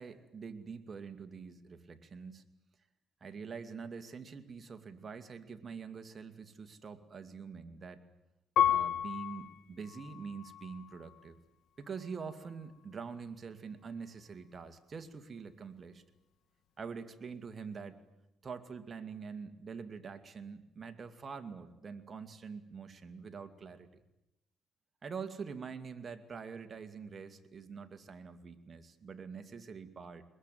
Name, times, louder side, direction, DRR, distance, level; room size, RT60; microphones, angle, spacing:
voice 1, 0.0-2.4 3.2-8.0 8.6-11.4 11.8-16.0 16.8-18.0 18.4-24.0 25.0-30.2, right 5 dB, 40° right, 7 dB, 2.3 m, -45 dB
Piano, 8.6-11.3 11.9-12.6, left 10 dB, 80° left, 2.5 m, -34 dB
22.5 x 20.5 x 9.3 m, 0.92 s
cardioid pair, 90°, 0 cm